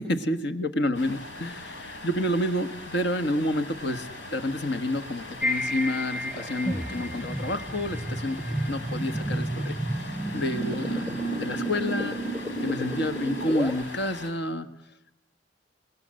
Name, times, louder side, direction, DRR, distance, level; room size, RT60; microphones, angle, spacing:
voice 1, 0.0-12.2 12.6-14.7, left 1 dB, 60° left, 10 dB, 1.5 m, -29 dB
sound 1, 0.9-14.3, left 2 dB, 80° left, 4.2 m, -41 dB
sound 2, 5.4-13.8, right 1 dB, ahead, 0.8 m, -31 dB
29.0 x 19.5 x 7.7 m, 0.82 s
head